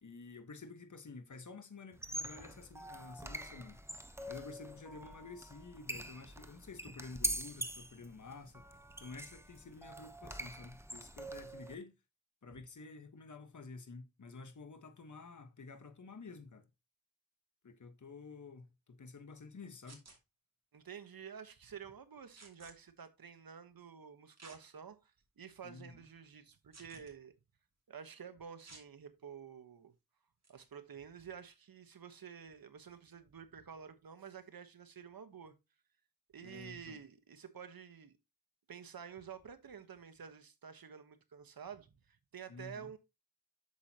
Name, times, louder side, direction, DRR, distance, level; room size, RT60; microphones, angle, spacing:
voice 1, 0.0-3.8 4.3-8.7 9.0-11.9 12.4-16.7 17.6-20.0 25.6-25.9 36.4-37.0 42.5-42.9, left 4 dB, 55° left, 1.4 m, -51 dB
sound 1, 1.9-11.7, right 1 dB, 5° right, 1.0 m, -44 dB
sound 2, 19.8-20.2 22.4-22.7 24.4-24.6 25.2-25.3 26.7-27.1 28.6-28.9 30.4-30.6, right 3 dB, 45° right, 2.8 m, -55 dB
voice 2, 20.7-27.3 27.9-29.9 30.5-35.6 36.3-38.2 38.7-43.0, right 7 dB, 70° right, 1.2 m, -50 dB
8.3 x 6.7 x 2.9 m
wide cardioid pair, 70°, 36 cm